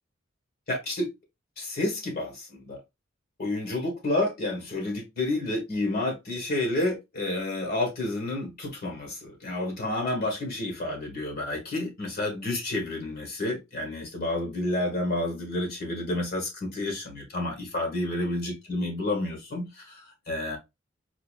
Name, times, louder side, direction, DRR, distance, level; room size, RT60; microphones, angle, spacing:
voice 1, 0.7-1.1 1.6-2.8 3.4-20.6, left 2 dB, 50° left, 1.5 m, -30 dB
4.7 x 2.8 x 2.3 m
head